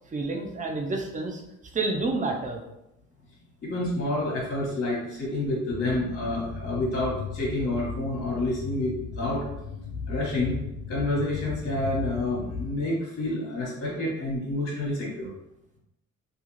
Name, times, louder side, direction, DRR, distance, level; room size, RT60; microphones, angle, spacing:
voice 1, 0.1-1.4 1.7-2.6, right 3 dB, 25° right, 2 dB, 0.5 m, -29 dB
voice 2, 3.6-9.4 10.1-10.6 10.9-15.3, left 1 dB, 50° left, -6 dB, 1.1 m, -28 dB
sound 1, 5.7-12.7, left 5 dB, 75° left, 0.6 m, -36 dB
2.4 x 2.3 x 3.1 m, 0.86 s
cardioid pair, 90°, 30 cm